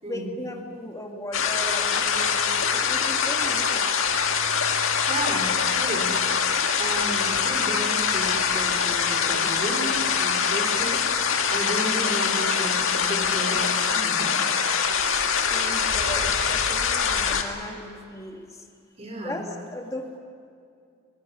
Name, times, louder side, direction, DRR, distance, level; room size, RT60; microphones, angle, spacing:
voice 1, 0.1-4.0 15.5-18.6 19.2-20.2, left 1 dB, 15° left, 2 dB, 2.0 m, -37 dB
sound 1, 1.3-17.4, left 6 dB, 70° left, 1.9 m, -24 dB
voice 2, 5.0-6.1 6.8-14.4 15.5-15.7 19.0-19.4, right 1 dB, 30° right, 2 dB, 4.5 m, -33 dB
24.5 x 16.5 x 10.0 m, 2.3 s
head